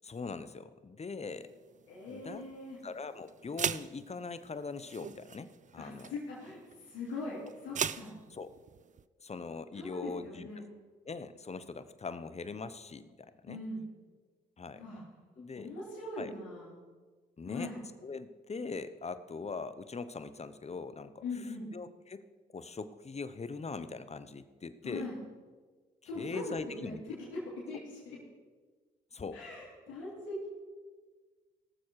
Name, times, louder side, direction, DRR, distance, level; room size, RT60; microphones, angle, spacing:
voice 1, 0.0-1.5 2.1-2.4 2.8-5.5 5.7-6.1 8.3-8.5 9.2-10.6 11.0-13.6 14.6-14.8 15.4-15.7 16.2-16.3 17.4-17.7 18.0-21.2 21.7-22.2 22.5-25.1 26.1-27.2 29.1-29.4, left 4 dB, 35° left, 13 dB, 1.0 m, -41 dB
sound 1, 1.3-9.0, right 7 dB, 40° right, 0.5 m, -41 dB
voice 2, 1.9-2.8 5.8-8.1 9.8-10.6 13.5-13.8 14.8-15.0 15.6-16.8 17.5-17.8 21.2-21.7 24.8-25.2 26.0-27.4 27.7-28.2 29.3-30.5, left 2 dB, 85° left, -7 dB, 3.5 m, -41 dB
18.0 x 7.2 x 4.8 m, 1.4 s
supercardioid pair, 50°, 19 cm